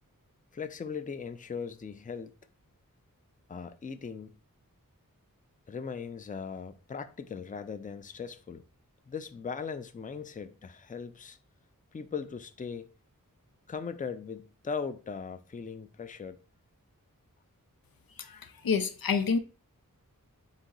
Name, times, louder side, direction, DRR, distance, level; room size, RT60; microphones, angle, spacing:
voice 1, 0.5-2.3 3.5-4.3 5.7-8.6 9.1-11.4 11.9-12.9 13.7-16.4, left 5 dB, 25° left, 0.4 m, -39 dB
voice 2, 18.2-19.4, left 5 dB, 85° left, 0.5 m, -28 dB
4.1 x 2.6 x 3.9 m
wide cardioid pair, 45°, 34 cm